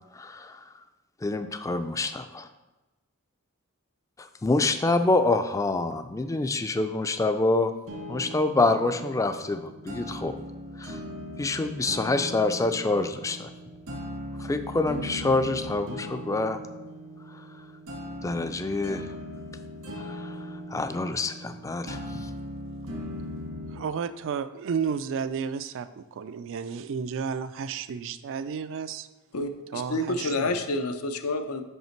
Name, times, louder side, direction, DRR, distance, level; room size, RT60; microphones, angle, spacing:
voice 1, 0.1-0.6 1.2-2.5 4.2-7.7 8.1-10.3 10.8-11.0 11.4-13.5 14.4-16.6 17.3-17.5 18.2-19.1 20.0-22.3, left 2 dB, 15° left, 9 dB, 0.3 m, -27 dB
sound 1, 7.9-23.9, equal, 85° right, 1.9 m, -39 dB
voice 2, 23.7-29.1 29.7-30.6, right 6 dB, 60° right, 13 dB, 0.4 m, -32 dB
voice 3, 29.3-31.6, left 2 dB, 90° left, 7 dB, 0.6 m, -29 dB
5.7 x 5.5 x 4.5 m, 1.1 s
head